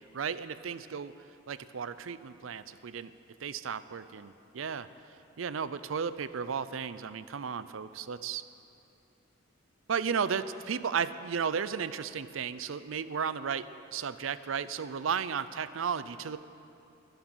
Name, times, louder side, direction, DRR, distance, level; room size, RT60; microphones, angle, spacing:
voice 1, 0.1-1.1 1.5-3.1 3.4-4.9 5.4-8.4 9.9-16.4, right 6 dB, 90° right, 14 dB, 0.5 m, -34 dB
23.0 x 8.1 x 6.2 m, 2.7 s
head